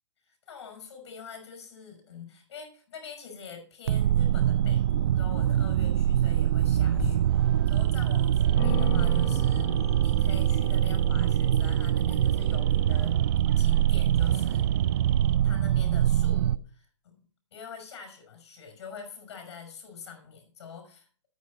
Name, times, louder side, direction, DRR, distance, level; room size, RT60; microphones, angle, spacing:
voice 1, 0.2-7.2 7.7-9.7 10.0-13.2 13.6-14.7 15.4-17.2 17.5-21.1, left 6 dB, 60° left, 6 dB, 6.1 m, -45 dB
sound 1, 3.9-16.6, right 11 dB, 60° right, 0.4 m, -24 dB
sound 2, 7.0-7.5 8.0-8.1 8.6-13.2, left 9 dB, 35° left, 1.2 m, -39 dB
sound 3, 7.5-15.4, right 13 dB, 40° right, 0.8 m, -46 dB
9.6 x 9.1 x 5.4 m, 0.41 s
hypercardioid pair, 140°, 16 cm